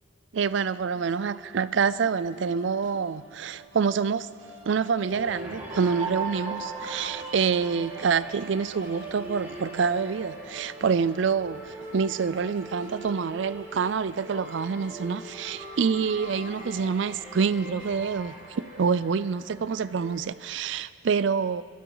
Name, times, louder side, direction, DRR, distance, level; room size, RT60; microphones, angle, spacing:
voice 1, 0.3-4.3 4.7-21.6, right 6 dB, 65° right, 0.4 m, -27 dB
sound 1, 0.9-19.7, right 1 dB, 85° right, 2.5 m, -47 dB
sound 2, 5.1-20.2, right 2 dB, 10° right, 4.2 m, -40 dB
26.5 x 12.0 x 3.9 m
head